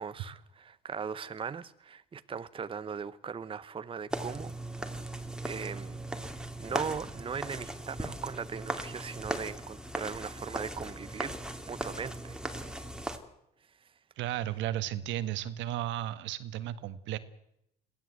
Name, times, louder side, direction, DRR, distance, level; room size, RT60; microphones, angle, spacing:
voice 1, 0.0-4.5 4.8-4.9 5.4-6.0 6.6-11.3 11.7-12.4 12.7-12.8 13.7-13.9, right 6 dB, 25° right, 0.9 m, -39 dB
sound 1, 4.1-13.2, right 1 dB, 5° right, 2.6 m, -38 dB
voice 2, 14.2-17.2, right 12 dB, 65° right, 1.6 m, -34 dB
22.5 x 16.5 x 8.0 m
supercardioid pair, 80°, 20 cm